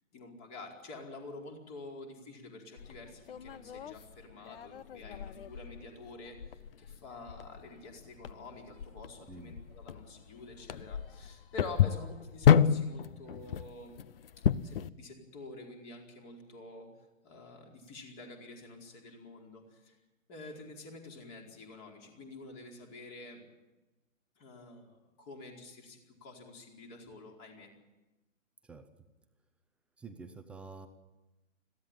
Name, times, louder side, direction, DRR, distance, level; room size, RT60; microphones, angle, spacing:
voice 1, 0.1-14.0 14.5-16.9 17.2-20.0 20.3-23.4 24.4-27.7, left 2 dB, 30° left, 1 dB, 4.6 m, -48 dB
sound 1, 2.8-14.9, left 9 dB, 45° left, 0.7 m, -31 dB
voice 2, 9.3-9.6 28.6-29.1 30.0-30.9, right 4 dB, 5° right, 7 dB, 0.6 m, -48 dB
22.0 x 15.0 x 9.0 m, 1.1 s
figure-of-eight pair, 130°, 40 cm